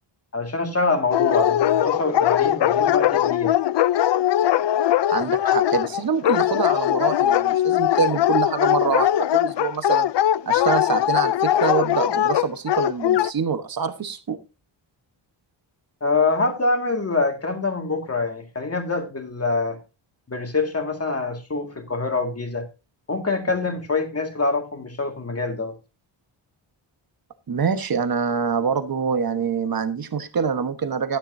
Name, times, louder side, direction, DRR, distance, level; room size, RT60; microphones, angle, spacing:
voice 1, 0.3-3.5 16.0-19.8 20.3-22.7 23.1-25.7, left 3 dB, 30° left, 2.1 m, -25 dB
Dog, 1.1-13.3, left 12 dB, 60° left, 0.5 m, -20 dB
voice 2, 5.1-10.1 10.5-14.4 27.5-31.2, right 6 dB, 45° right, 1.2 m, -25 dB
12.5 x 10.5 x 2.7 m
wide cardioid pair, 145°, 48 cm